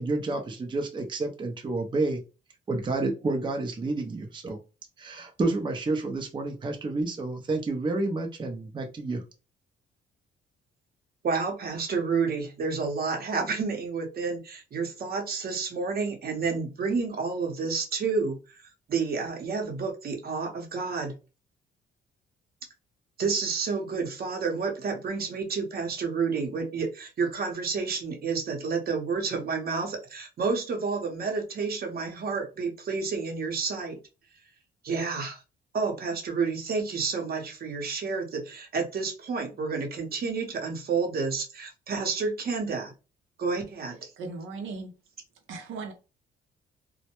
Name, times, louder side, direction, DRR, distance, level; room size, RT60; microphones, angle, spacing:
voice 1, 0.0-2.2 2.7-4.6 5.0-9.2, right 2 dB, 25° right, 0.5 m, -29 dB
voice 2, 11.2-18.4 18.9-21.2 23.2-34.0 34.8-35.4 35.7-42.9 43.4-44.1, right 4 dB, 50° right, 0.8 m, -30 dB
voice 3, 44.2-44.9 45.5-45.9, right 4 dB, 75° right, 0.6 m, -37 dB
2.1 x 2.1 x 2.8 m
cardioid pair, 90°, 20 cm